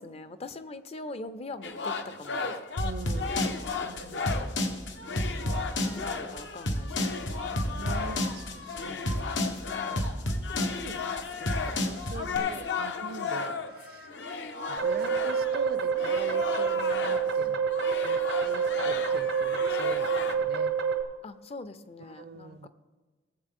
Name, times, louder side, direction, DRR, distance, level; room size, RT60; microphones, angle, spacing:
voice 1, 0.0-2.5 3.1-3.2 3.4-3.5 3.8-4.8 5.8-7.6 8.8-10.0 17.4-17.5 21.2-22.7, left 2 dB, 35° left, 13 dB, 0.5 m, -44 dB
sound 1, 1.6-4.6 5.0-17.4 17.7-20.3, left 5 dB, 70° left, 0.8 m, -35 dB
sound 2, 2.8-12.4, left 1 dB, 90° left, 1.2 m, -30 dB
voice 2, 2.8-3.3 3.8-4.2 7.7-9.0 10.4-11.0 11.3-14.1 14.7-20.7 22.0-22.7, right 4 dB, 55° right, 13 dB, 0.6 m, -43 dB
sound 3, 14.8-21.0, right 6 dB, 90° right, 1.2 m, -27 dB
19.0 x 7.4 x 3.6 m, 1.3 s
head